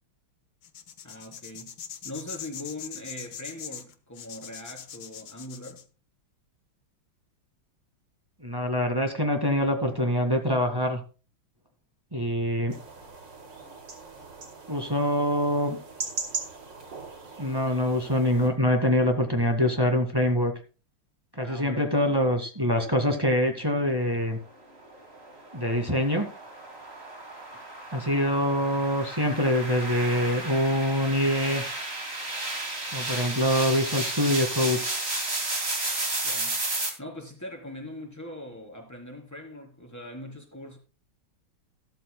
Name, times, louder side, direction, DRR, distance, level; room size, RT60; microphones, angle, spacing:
sound 1, 0.6-5.8, left 8 dB, 70° left, 1.8 m, -41 dB
voice 1, 1.0-1.8 2.0-5.8 21.4-22.4 36.2-36.6 37.0-40.8, left 1 dB, 10° left, 3.6 m, -41 dB
voice 2, 8.4-11.0 12.1-12.7 14.7-15.8 17.4-20.5 21.3-24.4 25.5-26.3 27.9-31.6 32.9-34.8, equal, 10° right, 1.9 m, -25 dB
sound 2, 12.7-18.5, right 4 dB, 60° right, 3.2 m, -39 dB
sound 3, 24.8-36.9, right 2 dB, 30° right, 2.7 m, -33 dB
14.5 x 13.0 x 2.2 m
omnidirectional pair, 2.2 m